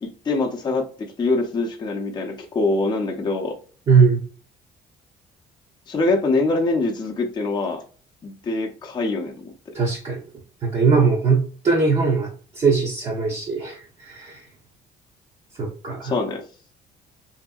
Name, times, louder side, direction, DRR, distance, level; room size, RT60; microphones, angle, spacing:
voice 1, 0.0-3.6 5.9-7.8 8.2-9.5 16.0-16.4, left 3 dB, 25° left, 0.6 m, -24 dB
voice 2, 3.9-4.2 9.7-10.2 10.6-14.4 15.6-16.1, right 5 dB, 40° right, 0.7 m, -20 dB
2.7 x 2.6 x 2.3 m
cardioid pair, 110°, 17 cm